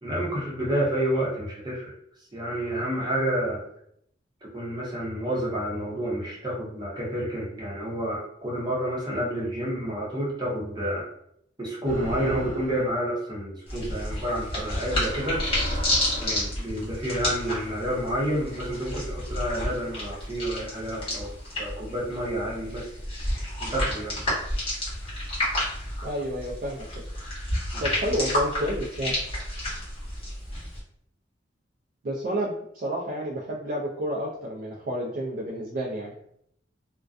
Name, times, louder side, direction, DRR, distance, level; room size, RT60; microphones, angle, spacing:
voice 1, 0.0-1.9 2.3-3.6 4.4-11.0 11.6-15.4 16.2-21.3 21.6-22.9 23.6-24.2 27.7-27.9, right 1 dB, 25° right, -5 dB, 0.8 m, -29 dB
sound 1, 11.8-12.9 13.9-14.1 14.9-16.5, equal, 65° right, 0.9 m, -34 dB
sound 2, 13.7-30.8, left 1 dB, 30° left, 1.0 m, -31 dB
voice 2, 26.0-27.1 27.8-29.2 32.0-36.1, equal, 50° right, -5 dB, 0.4 m, -30 dB
2.4 x 2.2 x 2.4 m, 0.71 s
head